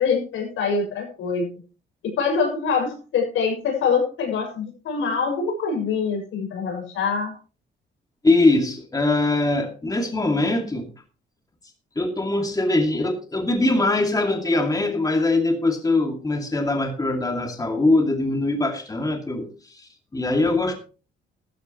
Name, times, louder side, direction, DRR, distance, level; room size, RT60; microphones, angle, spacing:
voice 1, 0.0-1.5 2.0-7.3, left 5 dB, 80° left, 2 dB, 6.5 m, -24 dB
voice 2, 8.2-10.9 12.0-20.7, left 2 dB, 20° left, 3 dB, 2.4 m, -22 dB
14.5 x 13.0 x 3.1 m, 0.36 s
cardioid pair, 90°, 20 cm